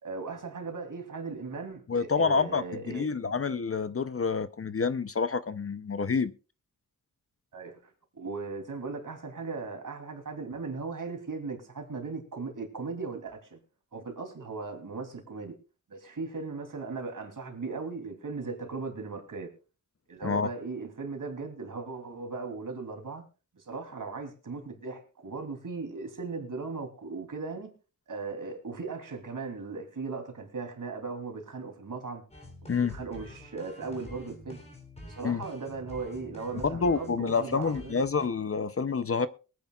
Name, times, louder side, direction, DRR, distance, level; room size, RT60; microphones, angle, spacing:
voice 1, 0.0-3.4 7.5-13.6 13.9-15.6 15.9-19.5 20.1-23.2 23.5-27.7 28.1-32.2 32.9-34.6 35.0-38.0, right 4 dB, 65° right, 3.0 m, -38 dB
voice 2, 1.9-6.3 20.2-20.5 32.7-33.0 35.2-35.4 36.6-39.3, left 5 dB, 40° left, 0.6 m, -28 dB
sound 1, 32.3-38.3, left 1 dB, 20° left, 3.4 m, -47 dB
23.0 x 9.5 x 2.4 m
wide cardioid pair, 110°, 35 cm